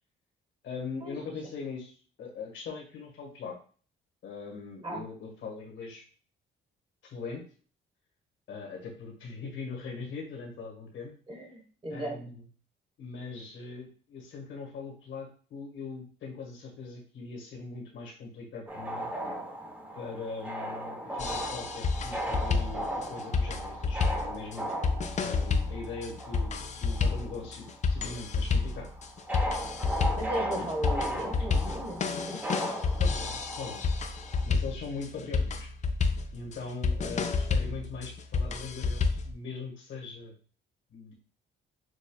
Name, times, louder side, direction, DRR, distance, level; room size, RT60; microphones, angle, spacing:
voice 1, 0.6-1.9 2.2-3.5 4.2-6.0 7.0-7.4 8.5-11.1 11.9-12.4 13.0-19.1 19.9-24.7 25.2-28.9 30.6-30.7 33.0-33.9 34.4-35.6 36.3-40.3 40.9-41.1, left 4 dB, 75° left, -1 dB, 1.5 m, -41 dB
voice 2, 11.3-12.2 30.1-32.4 37.0-37.4, right 1 dB, 25° right, 1 dB, 1.4 m, -37 dB
sound 1, 18.7-27.7 27.9-34.5, right 1 dB, 10° right, 0.7 m, -37 dB
sound 2, 21.2-39.3, left 4 dB, 35° left, 0.4 m, -30 dB
6.5 x 2.3 x 2.3 m, 0.41 s
cardioid pair, 90°, 20 cm